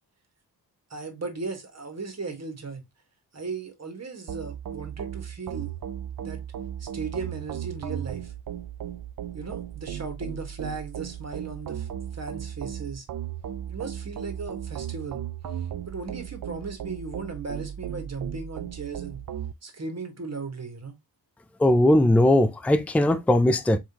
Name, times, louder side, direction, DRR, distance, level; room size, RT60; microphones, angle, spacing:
voice 1, 0.9-2.8 3.3-5.8 6.2-6.4 6.8-8.3 9.3-11.9 12.1-13.0 13.7-15.2 15.9-19.2 19.6-21.0, right 4 dB, 40° right, 1.7 m, -36 dB
sound 1, 4.3-19.5, right 10 dB, 60° right, 0.5 m, -36 dB
voice 2, 21.6-23.8, left 1 dB, 5° left, 0.5 m, -19 dB
4.7 x 3.7 x 2.9 m
wide cardioid pair, 80°, 39 cm